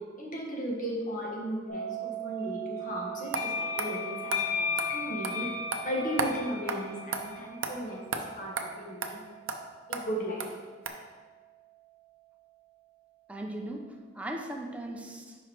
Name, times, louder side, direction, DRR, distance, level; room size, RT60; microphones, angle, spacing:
voice 1, 0.2-5.5 5.8-9.2 9.9-10.5, equal, 45° left, -2 dB, 1.4 m, -36 dB
sound 1, 1.7-12.6, right 13 dB, 60° left, 2.0 m, -44 dB
sound 2, 3.3-7.8, left 6 dB, 85° left, 1.0 m, -34 dB
sound 3, 3.3-3.4 3.8-3.9 4.3-4.4 4.8-4.9 5.2-5.3 5.7-5.8 6.2-6.3 6.7-6.8 7.1-7.2 7.6-7.7 8.1-8.2 8.6-8.7 9.0-9.1 9.5-9.6 9.9-10.0 10.4-10.5 10.9-11.0, right 5 dB, 85° right, 0.6 m, -32 dB
voice 2, 13.3-15.4, right 1 dB, 5° right, 1 dB, 0.6 m, -38 dB
5.4 x 4.7 x 4.5 m, 1.5 s
head